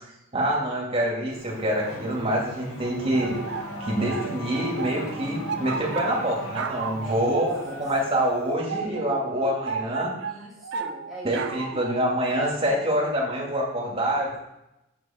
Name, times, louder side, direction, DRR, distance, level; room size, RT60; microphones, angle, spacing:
voice 1, 0.3-3.4 3.8-10.1 11.2-14.4, right 1 dB, 30° right, -3 dB, 2.5 m, -26 dB
Race car auto racing / Accelerating revving vroom, 1.3-8.5, left 1 dB, 85° left, 1.9 m, -39 dB
sound 1, 3.1-12.7, right 5 dB, 60° right, 0.6 m, -35 dB
voice 2, 7.0-7.5 7.7-7.8 10.2-11.9, right 1 dB, ahead, -8 dB, 3.2 m, -42 dB
8.1 x 7.3 x 4.5 m, 0.87 s
head